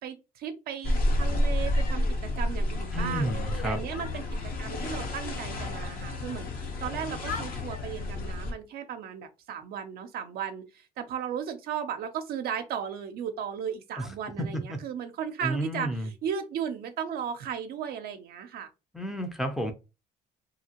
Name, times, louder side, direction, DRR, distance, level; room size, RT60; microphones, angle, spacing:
voice 1, 0.0-3.3 3.6-6.5 6.8-18.7, right 8 dB, 65° right, 0.5 m, -35 dB
sound 1, 0.8-8.5, left 1 dB, 60° left, 0.9 m, -30 dB
voice 2, 2.9-3.8 14.0-14.1 14.4-14.8 15.4-16.1 18.9-19.7, equal, ahead, 0.5 m, -31 dB
2.8 x 2.8 x 2.8 m
cardioid pair, 110°, 17 cm